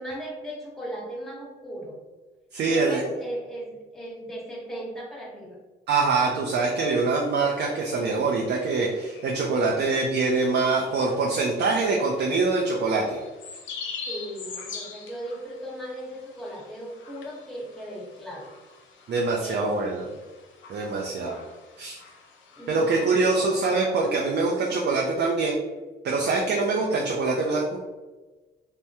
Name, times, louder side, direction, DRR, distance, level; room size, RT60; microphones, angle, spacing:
voice 1, 0.0-2.0 2.7-5.6 14.1-18.5 19.4-20.1 22.6-23.5, right 1 dB, ahead, -5 dB, 1.1 m, -37 dB
voice 2, 2.5-3.0 5.9-13.2 19.1-20.0 20.7-21.4 21.8-22.0 22.7-25.6 26.0-27.7, right 3 dB, 60° right, -2 dB, 0.5 m, -24 dB
sound 1, 7.2-23.5, left 5 dB, 70° left, 0.7 m, -45 dB
3.4 x 2.1 x 2.8 m, 1.2 s
cardioid pair, 90°, 20 cm